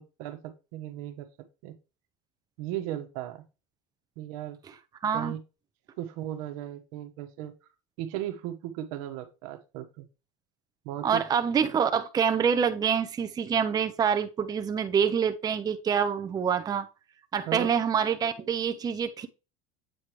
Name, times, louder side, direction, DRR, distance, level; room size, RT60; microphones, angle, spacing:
voice 1, 0.0-1.8 2.6-3.4 4.2-4.6 5.1-5.4 6.0-7.5 8.0-10.1 10.8-11.2 17.5-17.7, right 12 dB, 75° right, 1.2 m, -36 dB
voice 2, 5.0-5.4 11.0-16.9 17.3-19.3, right 7 dB, 20° right, 0.6 m, -26 dB
8.4 x 4.8 x 3.1 m
supercardioid pair, 125°, 18 cm